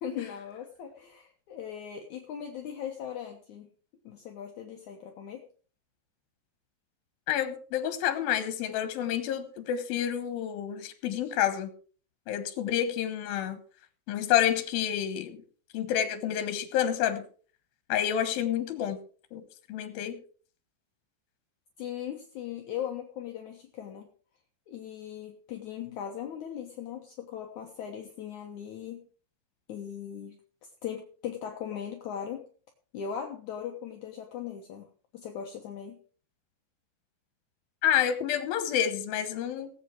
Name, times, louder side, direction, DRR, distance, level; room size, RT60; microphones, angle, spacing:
voice 1, 0.0-3.7 4.0-5.5 21.8-24.1 24.7-29.1 29.7-30.4 30.6-32.5 32.9-34.9 35.1-36.0, left 9 dB, 65° left, 3 dB, 2.4 m, -39 dB
voice 2, 7.3-11.7 12.3-13.6 14.1-15.4 15.7-17.2 17.9-19.0 19.3-19.4 19.7-20.2 25.8-25.9 37.8-39.7, left 10 dB, 85° left, 10 dB, 3.0 m, -29 dB
18.0 x 8.3 x 4.7 m, 0.42 s
omnidirectional pair, 4.1 m